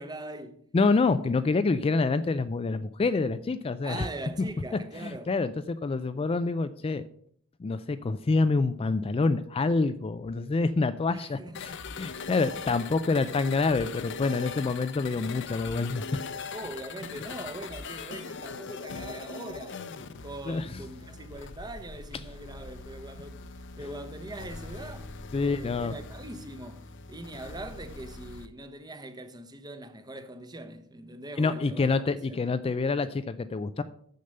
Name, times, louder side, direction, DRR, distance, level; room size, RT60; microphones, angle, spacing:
voice 1, 0.0-0.6 3.8-5.3 11.1-11.6 12.8-13.1 16.5-19.8 20.2-23.4 23.8-32.0 32.3-32.4, right 1 dB, 20° right, 0.8 m, -42 dB
voice 2, 0.7-4.1 5.0-7.0 7.6-16.2 20.5-20.7 25.3-25.9 31.4-33.8, left 3 dB, 25° left, 0.3 m, -27 dB
sound 1, 11.5-28.5, left 4 dB, 60° left, 0.7 m, -41 dB
6.8 x 6.5 x 6.7 m
head